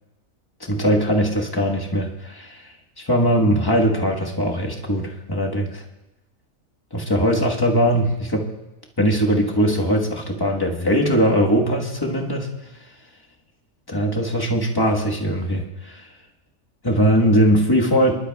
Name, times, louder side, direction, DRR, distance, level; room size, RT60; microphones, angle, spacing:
voice 1, 0.6-5.8 6.9-8.5 9.0-12.5 13.9-16.1 16.8-18.1, equal, 15° left, 0 dB, 1.3 m, -20 dB
24.5 x 12.0 x 2.3 m, 0.97 s
omnidirectional pair, 1.4 m